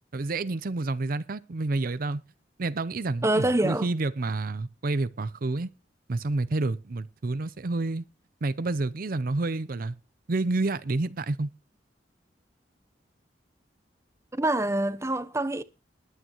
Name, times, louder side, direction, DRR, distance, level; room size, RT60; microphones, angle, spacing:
voice 1, 0.1-2.2 2.6-5.7 6.1-8.0 8.4-9.9 10.3-11.5, right 2 dB, 55° right, 0.6 m, -29 dB
voice 2, 3.2-3.9 14.3-15.6, right 1 dB, 15° right, 0.8 m, -25 dB
20.5 x 8.8 x 3.0 m
head